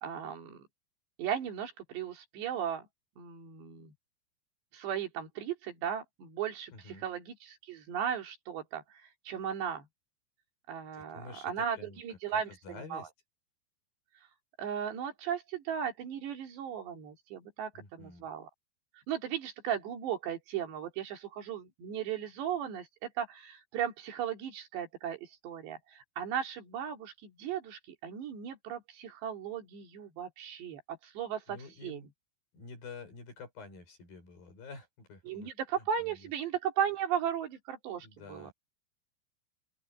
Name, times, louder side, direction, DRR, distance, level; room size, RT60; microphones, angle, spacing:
voice 1, 0.0-0.6 1.2-2.9 3.2-3.9 4.7-9.9 10.7-13.1 14.6-18.5 19.1-32.0 35.2-38.5, right 8 dB, 85° right, 5.0 m, -36 dB
voice 2, 6.7-7.0 10.9-12.0 12.3-13.1 17.7-18.3 31.5-32.1 32.5-35.5 36.0-36.3 38.0-38.5, left 4 dB, 60° left, 7.6 m, -49 dB
open air
omnidirectional pair, 4.8 m